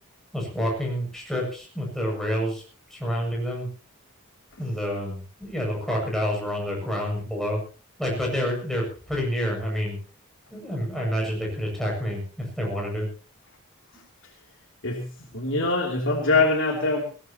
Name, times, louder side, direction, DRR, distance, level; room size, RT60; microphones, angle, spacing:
voice 1, 0.3-2.6 2.9-3.7 4.6-7.6 8.0-10.0 10.5-13.1, equal, ahead, -2 dB, 7.5 m, -28 dB
voice 2, 15.3-17.0, left 3 dB, 60° left, 1 dB, 3.2 m, -23 dB
21.0 x 17.5 x 3.0 m, 0.36 s
head